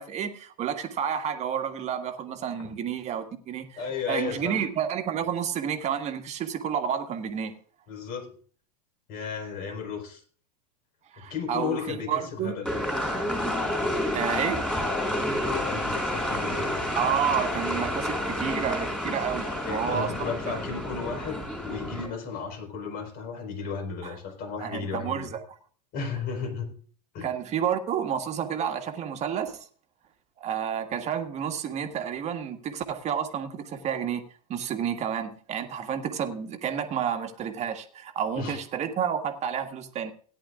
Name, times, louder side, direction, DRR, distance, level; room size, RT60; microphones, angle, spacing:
voice 1, 0.0-7.6 11.1-12.5 14.1-14.6 16.9-20.1 20.5-20.6 24.0-24.2 24.6-25.4 27.2-29.6 30.4-34.2 34.5-40.1, right 8 dB, 35° right, 6 dB, 1.7 m, -30 dB
voice 2, 3.8-4.6 7.9-8.3 9.1-10.2 11.2-12.7 15.2-16.8 19.6-25.3 25.9-26.7 27.1-27.3 38.3-38.6, left 6 dB, 45° left, 4 dB, 4.6 m, -34 dB
sound 1, 12.7-22.1, left 1 dB, 5° left, 4.6 m, -29 dB
17.5 x 10.5 x 2.5 m, 0.43 s
hypercardioid pair, 100°, 21 cm